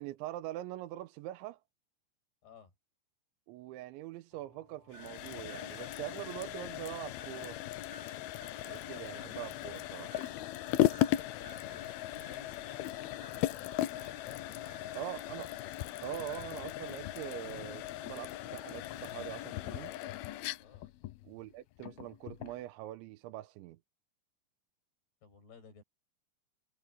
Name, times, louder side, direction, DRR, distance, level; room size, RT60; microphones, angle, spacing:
voice 1, 0.0-1.6 3.5-7.6 8.6-10.2 15.0-15.5 16.0-19.9 21.2-23.8, right 14 dB, 85° right, 3.2 m, -43 dB
sound 1, 4.3-14.9, left 2 dB, 40° left, 7.6 m, -64 dB
sound 2, 4.9-22.6, left 14 dB, 85° left, 2.1 m, -37 dB
sound 3, 4.9-15.8 16.2-17.0, right 3 dB, 45° right, 7.8 m, -60 dB
voice 2, 10.7-13.8 14.0-14.8 20.6-20.9 25.2-25.8, left 7 dB, 60° left, 8.9 m, -56 dB
omnidirectional pair, 5.3 m